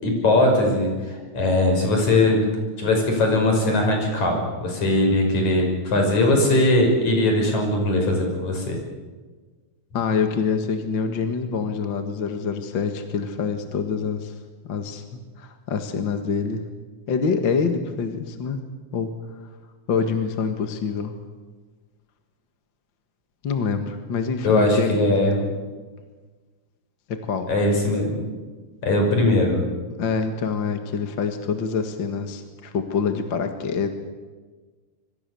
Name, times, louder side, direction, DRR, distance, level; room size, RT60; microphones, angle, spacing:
voice 1, 0.0-2.5 2.8-8.8 24.4-25.5 27.5-28.3 28.8-29.7, left 1 dB, 75° left, 2 dB, 7.2 m, -20 dB
voice 2, 9.9-14.3 14.6-16.6 17.1-18.6 18.9-19.1 19.9-21.1 23.4-25.0 27.1-27.5 30.0-33.9, left 5 dB, 45° left, 6 dB, 2.1 m, -26 dB
26.0 x 24.0 x 7.0 m, 1.4 s
omnidirectional pair, 3.4 m